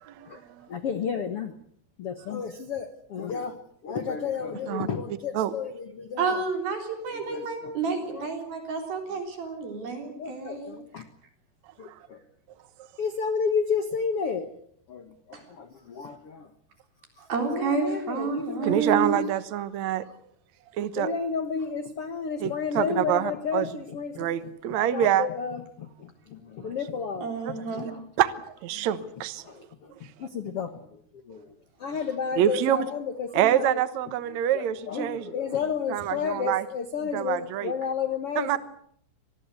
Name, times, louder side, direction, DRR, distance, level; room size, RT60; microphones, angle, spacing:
voice 1, 0.0-0.7 4.7-4.9 5.3-5.5 11.9-12.0 18.6-20.0 20.7-21.1 22.4-23.8 24.2-25.3 26.6-26.8 27.4-27.5 28.2-29.5 32.3-32.8 33.3-35.3 35.9-36.7 37.0-37.7 38.3-38.6, right 11 dB, 85° right, 13 dB, 1.5 m, -26 dB
voice 2, 0.7-1.5 2.0-3.6 3.8-6.3 7.3-7.4 8.1-8.2 10.2-11.0 11.8-11.9 13.0-14.5 14.9-15.0 15.6-16.4 17.5-18.8 21.0-24.3 24.9-25.6 26.6-27.3 30.2-30.7 31.3-31.4 31.8-33.7 34.9-38.5, left 6 dB, 75° left, 9 dB, 1.3 m, -31 dB
voice 3, 6.2-10.8 15.3-15.4 17.3-19.2 27.2-27.9 31.9-32.1, right 4 dB, 60° right, 4 dB, 5.4 m, -30 dB
26.0 x 20.0 x 8.3 m, 0.66 s
omnidirectional pair, 5.0 m